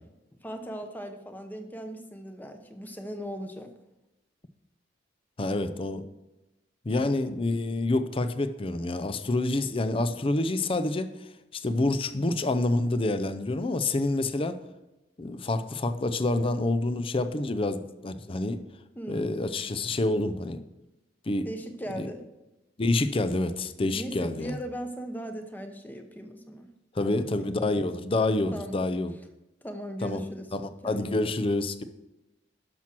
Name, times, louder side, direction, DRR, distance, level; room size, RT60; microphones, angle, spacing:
voice 1, 0.3-3.7 19.0-19.5 21.4-22.2 24.0-26.7 27.0-27.5 28.5-28.8 29.6-30.5 30.8-31.3, equal, 10° left, 6 dB, 0.9 m, -38 dB
voice 2, 5.4-6.0 6.9-11.1 11.5-14.6 15.2-18.6 19.1-20.6 21.3-21.5 21.9-22.1 22.8-24.6 27.0-29.1 30.0-30.2 30.5-31.8, left 2 dB, 30° left, 10 dB, 0.5 m, -27 dB
12.0 x 6.0 x 4.4 m, 0.98 s
head